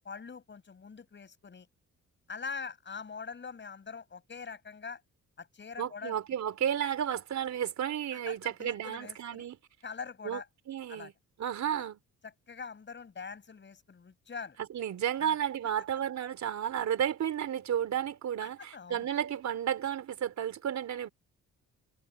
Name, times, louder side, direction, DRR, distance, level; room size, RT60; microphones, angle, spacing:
voice 1, 0.0-1.7 2.3-5.0 5.4-6.1 8.1-9.5 9.8-10.5 10.9-11.1 11.7-11.9 12.2-14.6 15.2-15.4 18.4-19.1, left 5 dB, 40° left, 6.9 m, -43 dB
voice 2, 5.8-9.6 10.2-10.4 10.7-11.1 11.4-12.0 14.7-21.1, right 9 dB, 65° right, 3.7 m, -32 dB
cardioid pair, 90°, 30 cm